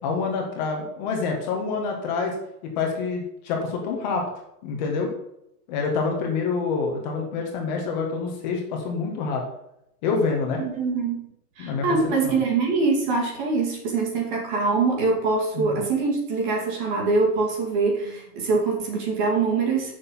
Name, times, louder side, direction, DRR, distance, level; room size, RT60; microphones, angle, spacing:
voice 1, 0.0-2.3 2.6-4.2 4.6-5.1 5.7-9.4 10.0-10.6 11.6-11.8 12.2-12.4 15.5-15.8 18.0-18.1, left 4 dB, 30° left, 1 dB, 1.7 m, -27 dB
voice 2, 10.6-11.2 11.6-19.9, right 4 dB, 30° right, 0 dB, 2.3 m, -24 dB
8.2 x 6.9 x 5.6 m, 0.79 s
supercardioid pair, 180°, 46 cm